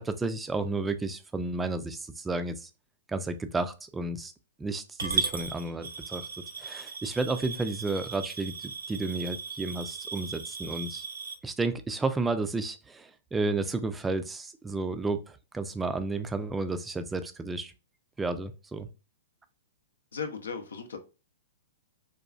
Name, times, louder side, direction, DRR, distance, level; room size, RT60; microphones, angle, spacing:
voice 1, 0.0-2.7 3.1-4.3 4.6-6.3 6.6-11.0 11.4-17.7 18.2-18.9, right 3 dB, 10° right, 0.3 m, -32 dB
Coin (dropping) / Glass, 5.0-11.3, right 5 dB, 85° right, 0.6 m, -36 dB
voice 2, 20.1-21.0, left 5 dB, 80° left, 0.6 m, -36 dB
3.8 x 2.3 x 2.3 m
hypercardioid pair, 115°, 0 cm